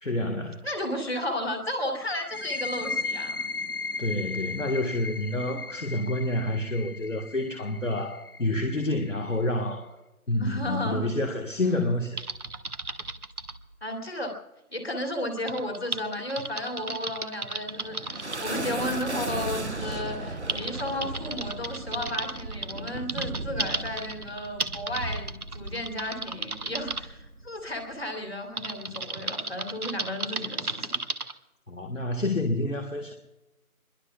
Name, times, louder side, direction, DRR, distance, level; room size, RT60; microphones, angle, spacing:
voice 1, 0.0-0.7 4.0-10.0 10.3-12.2 31.7-33.1, left 1 dB, 60° left, 4 dB, 1.6 m, -28 dB
voice 2, 0.6-3.4 10.4-11.1 13.8-14.4 14.7-31.0, left 1 dB, 45° left, 3 dB, 3.0 m, -33 dB
sound 1, 2.2-9.6, left 3 dB, 90° left, 1.0 m, -36 dB
Typing, 12.2-13.6 15.5-18.5 19.5-19.6 20.1-27.0 28.6-31.3, right 3 dB, 85° right, 1.4 m, -34 dB
sound 2, 17.3-28.1, right 2 dB, 50° right, 0.9 m, -36 dB
25.0 x 22.5 x 2.4 m, 1.0 s
figure-of-eight pair, 180°, 43 cm